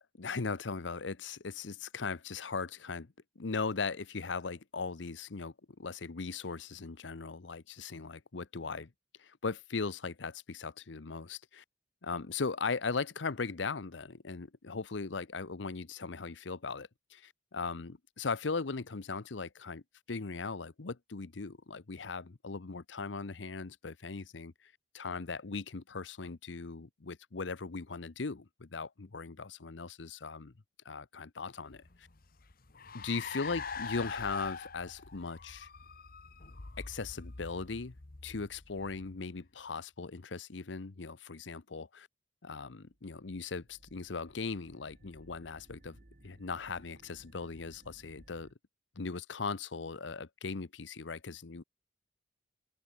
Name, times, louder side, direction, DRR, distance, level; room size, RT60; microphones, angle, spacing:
voice 1, 0.2-8.9 9.2-11.6 12.0-19.8 20.1-30.5 30.8-32.1 32.9-35.7 36.8-37.9 38.2-42.1 42.4-46.0 46.2-48.5 49.0-51.6, left 4 dB, 90° left, 0.9 m, -39 dB
Car, 31.7-39.5, left 5 dB, 55° left, 1.1 m, -44 dB
sound 1, 42.9-48.5, right 1 dB, 50° right, 1.6 m, -61 dB
open air
head